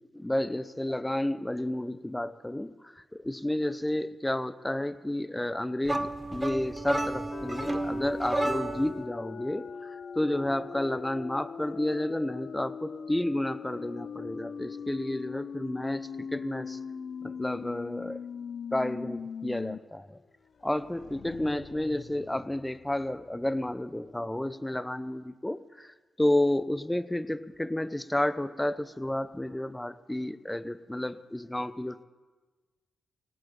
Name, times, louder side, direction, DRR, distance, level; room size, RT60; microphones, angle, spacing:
voice 1, 0.1-9.7 10.1-16.8 17.2-18.2 18.7-20.2 20.6-32.0, left 1 dB, 10° left, 15 dB, 0.8 m, -31 dB
sound 1, 5.9-9.0, right 2 dB, 20° right, 1.1 m, -31 dB
sound 2, 7.3-19.8 20.1-20.2 20.6-23.3, left 6 dB, 60° left, 0.5 m, -41 dB
17.0 x 8.0 x 9.0 m, 1.3 s
hypercardioid pair, 45°, 0 cm